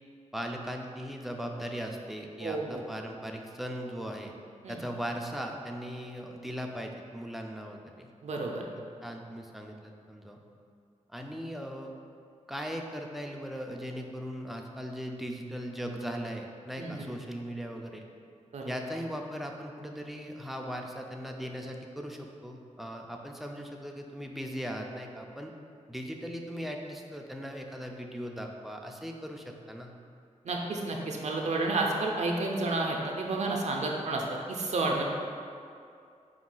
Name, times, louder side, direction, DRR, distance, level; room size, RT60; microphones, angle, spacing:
voice 1, 0.3-4.3 4.7-8.1 9.0-10.4 11.1-11.9 12.5-18.0 18.7-25.5 25.9-29.9, equal, ahead, 1 dB, 0.3 m, -38 dB
voice 2, 2.4-2.8 4.6-4.7 8.2-8.6 16.8-17.1 18.5-18.7 30.4-34.2 34.5-35.0, right 2 dB, 65° right, 0 dB, 0.4 m, -30 dB
4.9 x 2.3 x 3.7 m, 2.4 s
wide cardioid pair, 110°, 13 cm